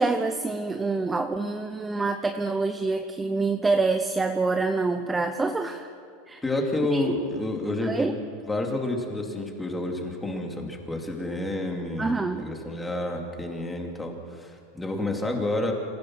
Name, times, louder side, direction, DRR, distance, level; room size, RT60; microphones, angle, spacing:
voice 1, 0.0-5.9 6.3-6.4 6.9-7.1 7.8-8.1 12.0-12.5, right 3 dB, 10° right, 7 dB, 0.7 m, -26 dB
voice 2, 6.4-8.1 8.5-15.7, left 2 dB, 10° left, 1 dB, 2.6 m, -29 dB
27.5 x 15.5 x 6.2 m, 2.3 s
supercardioid pair, 150°, 0 cm